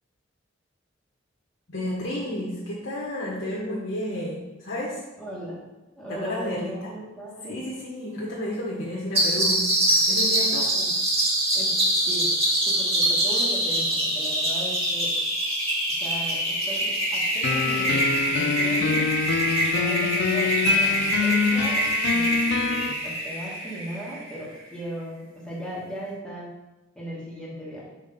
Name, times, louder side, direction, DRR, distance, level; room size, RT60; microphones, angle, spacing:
voice 1, 1.7-5.0 6.1-6.9 7.4-9.6 10.1-10.7, left 1 dB, 80° left, -5 dB, 1.2 m, -31 dB
voice 2, 5.2-5.6 5.9-7.6 10.7-10.9 11.5-11.7 12.1-12.3 12.7-15.1 16.0-19.1 19.4-26.5 26.9-27.8, right 1 dB, 5° left, -6 dB, 1.5 m, -37 dB
sound 1, 9.1-24.4, right 1 dB, 30° right, 1.7 m, -24 dB
sound 2, 17.4-22.9, left 5 dB, 60° left, 0.3 m, -26 dB
5.4 x 3.8 x 5.3 m, 1.1 s
head